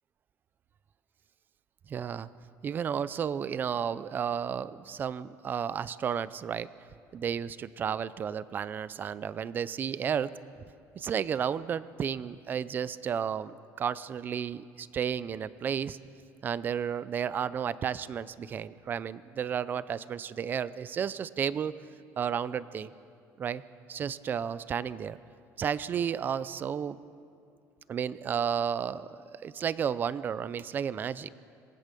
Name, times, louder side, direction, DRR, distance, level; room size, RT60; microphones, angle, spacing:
voice 1, 1.9-2.3 2.6-6.7 7.1-10.3 11.0-16.0 16.4-21.7 22.2-22.9 23.4-23.6 23.9-25.2 25.6-27.0 27.9-31.3, right 8 dB, 30° right, 17 dB, 0.5 m, -32 dB
26.5 x 19.5 x 6.8 m, 2.4 s
cardioid pair, 165°, 7 cm